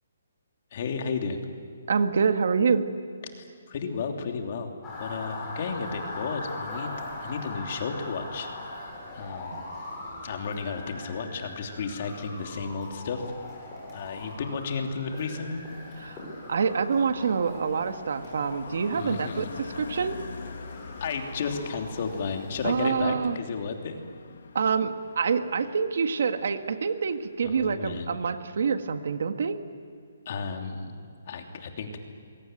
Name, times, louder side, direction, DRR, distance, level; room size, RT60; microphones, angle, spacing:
voice 1, 0.7-1.4 3.4-4.7 5.0-6.9 7.2-8.5 9.1-9.8 10.2-13.2 13.9-15.6 18.9-19.5 21.0-24.0 27.4-28.1 30.2-32.0, left 5 dB, 40° left, 4 dB, 3.0 m, -33 dB
voice 2, 1.9-2.9 16.0-20.2 22.6-23.4 24.5-29.6, right 5 dB, 60° right, 8 dB, 1.7 m, -26 dB
Motor vehicle (road) / Siren, 4.8-22.8, left 2 dB, 10° left, 7.8 m, -41 dB
Car passing by, 13.7-28.5 28.8-29.1, left 5 dB, 65° left, 2.0 m, -46 dB
27.0 x 22.5 x 9.2 m, 2.3 s
hypercardioid pair, 170°, 0 cm